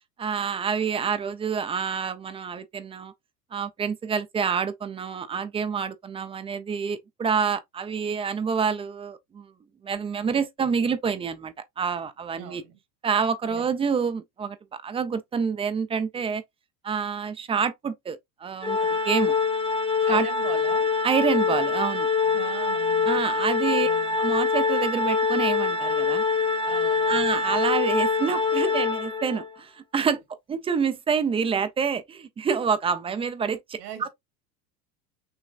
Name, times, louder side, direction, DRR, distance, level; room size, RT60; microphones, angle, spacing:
voice 1, 0.2-3.1 3.5-9.5 9.8-12.6 13.0-14.6 14.8-16.4 16.8-19.4 20.1-20.3 21.0-22.1 23.1-23.9 24.2-26.2 27.1-30.2 30.5-34.1, right 6 dB, 15° right, 0.3 m, -27 dB
voice 2, 12.4-12.8 13.5-13.7 20.0-20.9 22.2-23.3 23.8-24.2 26.6-27.3 33.8-34.1, right 9 dB, 75° right, 1.9 m, -40 dB
Organ, 18.6-29.5, left 4 dB, 10° left, 0.8 m, -24 dB
6.1 x 3.1 x 2.4 m
hypercardioid pair, 95°, 49 cm